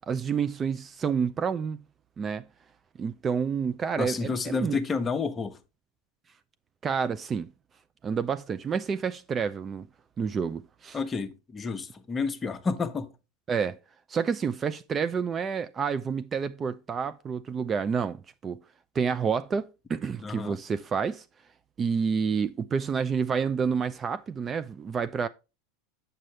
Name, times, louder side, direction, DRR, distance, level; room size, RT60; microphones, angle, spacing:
voice 1, 0.1-1.8 2.2-2.5 3.0-4.8 6.8-7.5 8.0-9.9 10.2-11.0 13.5-13.8 14.1-18.2 18.4-18.6 18.9-21.2 21.8-25.3, right 6 dB, 30° right, 0.4 m, -29 dB
voice 2, 4.0-5.6 10.9-13.1 20.2-20.6, left 4 dB, 20° left, 0.9 m, -30 dB
7.5 x 6.8 x 3.2 m
hypercardioid pair, 95°, 0 cm